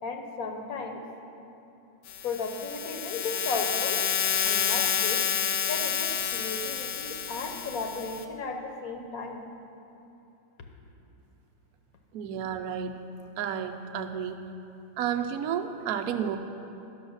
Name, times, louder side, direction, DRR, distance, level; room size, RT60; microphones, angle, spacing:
voice 1, 0.0-1.0 2.2-4.0 4.4-5.3 5.7-9.5, left 4 dB, 55° left, 3 dB, 1.2 m, -35 dB
sound 1, 2.1-8.2, left 8 dB, 80° left, 1.4 m, -29 dB
voice 2, 12.1-12.9 13.4-14.3 15.0-16.4, right 8 dB, 70° right, 6 dB, 0.9 m, -31 dB
11.0 x 6.4 x 6.3 m, 2.9 s
omnidirectional pair, 2.1 m